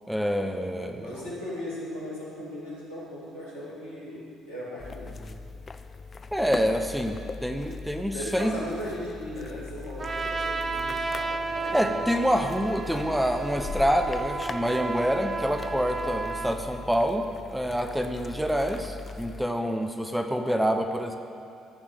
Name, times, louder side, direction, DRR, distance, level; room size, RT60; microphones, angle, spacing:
voice 1, 0.1-1.1 6.3-8.5 11.7-17.2 17.5-21.2, equal, 5° right, 5 dB, 0.8 m, -27 dB
voice 2, 1.0-5.3 8.1-11.9, equal, 85° left, -9 dB, 2.8 m, -37 dB
sound 1, 4.8-19.5, left 4 dB, 35° left, 0.5 m, -40 dB
Trumpet, 10.0-16.6, right 4 dB, 30° right, 0.7 m, -33 dB
14.5 x 5.1 x 6.7 m, 2.5 s
figure-of-eight pair, 45°, 0 cm